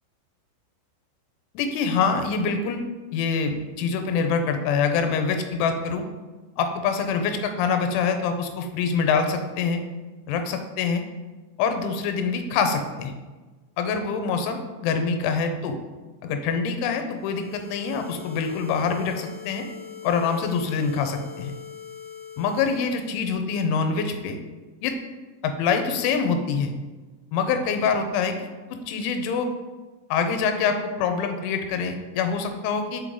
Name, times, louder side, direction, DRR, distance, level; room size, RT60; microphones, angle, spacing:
voice 1, 1.6-2.8 3.1-6.0 6.6-9.8 10.3-11.0 11.6-13.1 13.8-15.8 16.2-19.6 20.0-21.5 22.4-24.4 24.8-24.9 25.4-26.7 27.3-28.4 28.9-29.5 30.1-33.0, left 5 dB, 90° left, 6 dB, 3.1 m, -25 dB
sound 1, 17.1-23.3, left 8 dB, 70° left, 2.2 m, -42 dB
6.2 x 5.3 x 3.8 m, 1.3 s
omnidirectional pair, 5.4 m